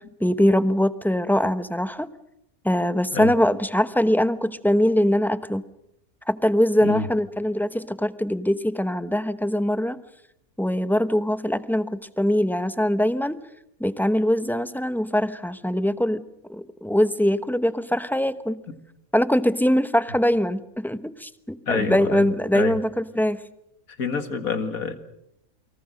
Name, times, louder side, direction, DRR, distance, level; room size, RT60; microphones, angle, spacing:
voice 1, 0.2-2.1 2.6-5.6 6.3-10.0 10.6-13.4 13.8-16.2 16.5-18.6 19.1-23.4, equal, ahead, 12 dB, 0.8 m, -22 dB
voice 2, 21.7-22.8 24.0-24.9, left 4 dB, 85° left, 8 dB, 2.4 m, -27 dB
29.0 x 23.5 x 6.5 m, 0.80 s
omnidirectional pair, 1.5 m